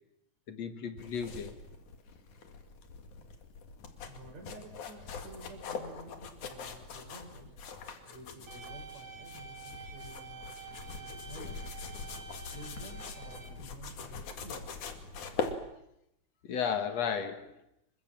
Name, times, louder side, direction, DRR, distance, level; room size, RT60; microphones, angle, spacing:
voice 1, 0.5-1.6 16.4-17.6, left 7 dB, 65° left, 2.8 m, -34 dB
sound 1, 1.0-15.6, left 5 dB, 85° left, 3.7 m, -42 dB
voice 2, 4.1-7.5 8.1-11.6 12.3-14.7, right 1 dB, 65° right, 6.2 m, -51 dB
sound 2, 8.5-13.5, right 5 dB, 35° right, 2.8 m, -48 dB
27.5 x 24.0 x 7.6 m
omnidirectional pair, 3.4 m